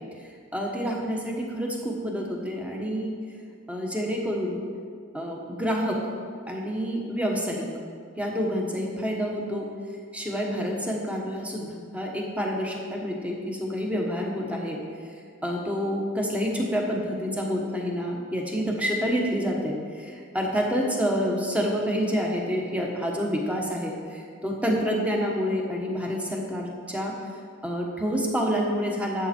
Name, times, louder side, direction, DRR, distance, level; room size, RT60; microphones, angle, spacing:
voice 1, 0.5-3.1 3.7-4.6 5.1-6.0 6.5-7.7 8.2-9.7 10.1-14.8 15.4-27.1 27.6-29.3, equal, 5° right, -1 dB, 1.3 m, -28 dB
12.0 x 8.0 x 4.5 m, 2.1 s
head